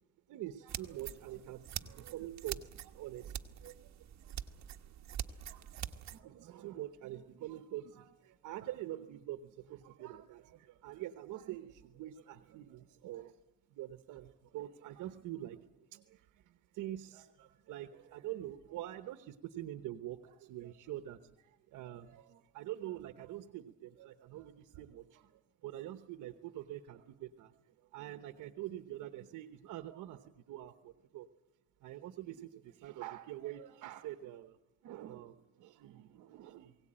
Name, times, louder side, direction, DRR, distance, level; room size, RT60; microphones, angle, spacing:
voice 1, 0.3-1.6 2.1-3.9 4.2-4.6 5.5-13.3 13.7-27.5 27.9-31.3 31.8-34.6 34.8-36.8, right 13 dB, 90° right, 9 dB, 1.1 m, -46 dB
sound 1, 0.7-6.2, right 10 dB, 65° right, 1.2 m, -45 dB
21.5 x 17.5 x 8.8 m, 0.95 s
cardioid pair, 90°, 30 cm